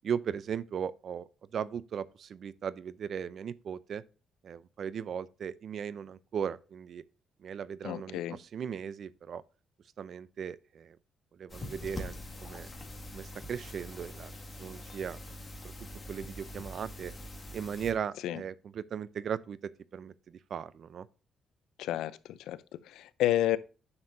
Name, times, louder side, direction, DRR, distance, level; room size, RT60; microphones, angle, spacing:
voice 1, 0.0-4.0 4.4-7.0 7.4-9.4 10.0-11.0 11.4-12.7 13.1-14.3 14.6-15.2 16.1-17.1 17.5-21.1, right 7 dB, 60° right, 0.5 m, -37 dB
voice 2, 7.8-8.4 18.2-18.4 21.8-23.6, left 13 dB, 85° left, 0.5 m, -31 dB
sound 1, 11.5-17.9, left 1 dB, 25° left, 2.1 m, -44 dB
9.6 x 6.6 x 2.7 m
cardioid pair, 90°, 0 cm